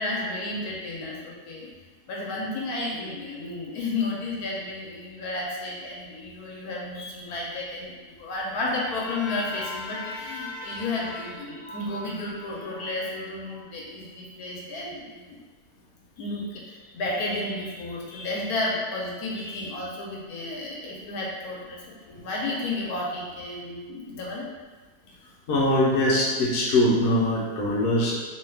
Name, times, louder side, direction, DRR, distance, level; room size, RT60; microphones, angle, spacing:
voice 1, 0.0-1.7 2.1-15.4 16.2-24.5, left 2 dB, 80° left, -4 dB, 1.1 m, -32 dB
voice 2, 25.5-28.2, left 1 dB, 60° left, -5 dB, 0.9 m, -22 dB
2.8 x 2.3 x 3.3 m, 1.4 s
omnidirectional pair, 1.6 m